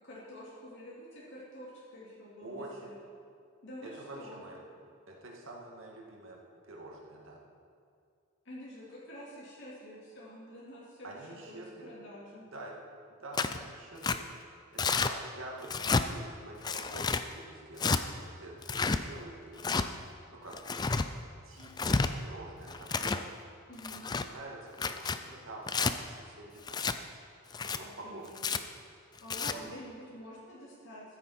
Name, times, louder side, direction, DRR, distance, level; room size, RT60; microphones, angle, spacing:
voice 1, 0.0-2.9 3.6-4.4 8.4-12.4 23.7-24.0 27.8-28.4 29.2-31.2, equal, 55° left, -7 dB, 2.4 m, -48 dB
voice 2, 2.4-2.9 3.8-6.4 6.7-7.4 11.0-11.9 12.5-12.7 13.2-14.4 14.7-19.9 20.3-20.5 21.4-23.4 23.9-26.9 27.6-28.8 29.5-29.7, right 2 dB, 65° right, -2 dB, 2.1 m, -47 dB
Tearing, 13.3-13.6 14.0-14.2 14.8-15.1 15.6-16.0 16.6-17.2 17.8-18.0 18.6-19.0 19.6-19.9 20.5-21.1 21.6-22.1 22.7-23.2 23.8-24.3 24.7-25.2 25.7-25.9 26.7-27.0 27.5-27.8 28.4-28.6 29.2-29.5, left 4 dB, 20° left, 0.3 m, -30 dB
14.5 x 9.9 x 4.3 m, 2.4 s
head